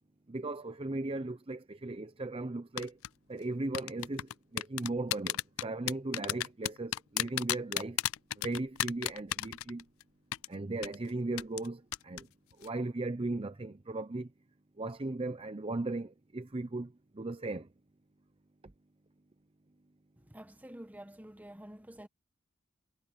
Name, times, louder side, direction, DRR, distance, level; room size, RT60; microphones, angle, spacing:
voice 1, 0.3-3.0 3.3-8.0 8.4-9.8 10.5-12.3 12.6-14.3 14.8-17.7, right 2 dB, 30° right, 0.7 m, -37 dB
sound 1, 2.8-3.1 3.7-10.0 10.3-10.5 10.8-11.0 11.4-11.7 11.9-12.2 12.5-12.7, left 13 dB, 85° left, 0.4 m, -32 dB
voice 2, 20.2-22.1, right 1 dB, 10° right, 1.2 m, -49 dB
head